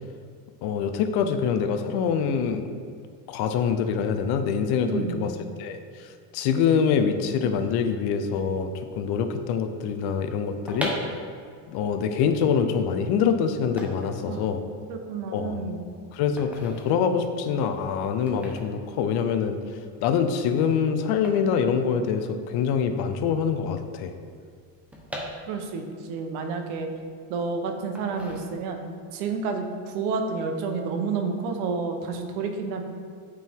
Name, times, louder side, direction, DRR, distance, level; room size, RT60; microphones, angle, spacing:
voice 1, 0.6-2.6 3.3-5.3 5.6-10.9 11.7-14.6 15.3-15.6 16.1-19.6 20.0-24.1, left 6 dB, 55° left, 8 dB, 0.7 m, -25 dB
voice 2, 4.8-5.3 14.3-14.4 14.9-15.9 25.5-26.9 27.3-28.8 29.1-32.8, right 4 dB, 70° right, 5 dB, 1.1 m, -30 dB
sound 1, 10.7-22.5 22.8-22.9 23.1-25.9 26.4-27.4 27.9-28.9 29.3-29.6, equal, 5° right, 1.1 m, -40 dB
8.9 x 4.6 x 3.6 m, 2.1 s
supercardioid pair, 125°, 48 cm